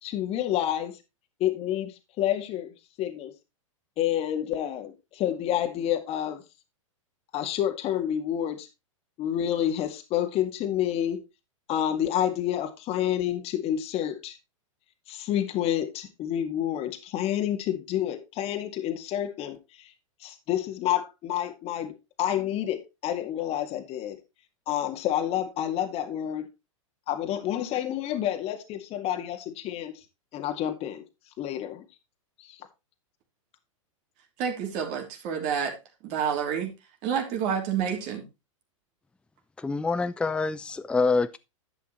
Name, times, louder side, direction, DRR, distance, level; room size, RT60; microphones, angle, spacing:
voice 1, 0.0-0.9 1.4-2.7 3.0-3.3 4.0-6.4 7.3-8.7 9.2-11.2 11.7-14.4 15.1-19.9 20.2-24.2 24.7-26.5 27.1-30.0 30.3-31.0 31.4-31.8 32.4-32.7, left 11 dB, 35° left, 2.0 m, -29 dB
voice 2, 34.4-35.8 36.0-36.7 37.0-38.2, right 7 dB, 45° right, 3.1 m, -28 dB
voice 3, 39.6-41.4, left 4 dB, 5° left, 0.5 m, -26 dB
11.0 x 8.3 x 3.1 m
hypercardioid pair, 105°, 17 cm